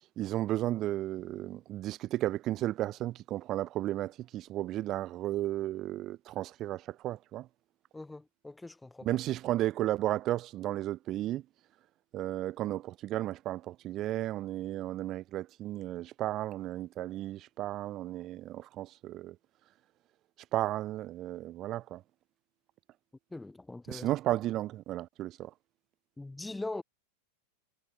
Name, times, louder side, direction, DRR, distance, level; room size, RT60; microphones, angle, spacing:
voice 1, 0.2-7.5 9.0-11.4 12.1-19.3 20.5-22.0 23.9-25.5, right 14 dB, 35° right, 2.2 m, -34 dB
voice 2, 7.9-9.1 23.3-24.1 26.2-26.8, left 2 dB, 5° left, 3.2 m, -41 dB
figure-of-eight pair, 90°, 0 cm